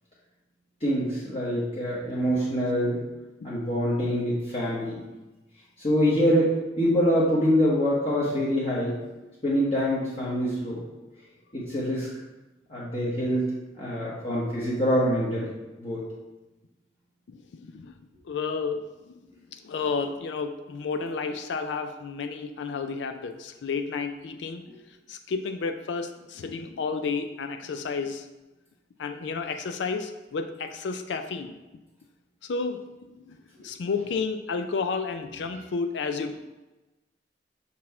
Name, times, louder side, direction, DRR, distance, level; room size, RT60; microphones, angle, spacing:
voice 1, 0.8-3.0 3.4-5.0 5.8-9.0 9.4-10.8 11.5-12.1 12.7-13.5 13.8-15.5 15.8-16.0 24.7-24.8 35.5-35.6, equal, 35° left, -8 dB, 1.2 m, -25 dB
voice 2, 17.3-17.9 18.2-19.1 19.5-24.6 25.1-28.3 29.0-31.6 32.4-32.8 33.1-33.4 33.6-36.3, left 4 dB, 80° left, 8 dB, 0.4 m, -31 dB
5.5 x 4.3 x 4.2 m, 1.1 s
head